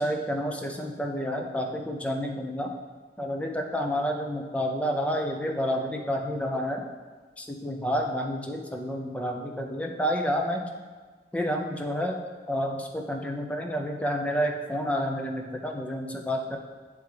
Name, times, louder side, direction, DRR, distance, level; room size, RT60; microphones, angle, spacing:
voice 1, 0.0-2.7 3.2-6.9 7.4-10.6 11.3-12.2 12.5-16.6, equal, 10° left, 1 dB, 0.5 m, -29 dB
9.4 x 3.4 x 3.4 m, 1.4 s
head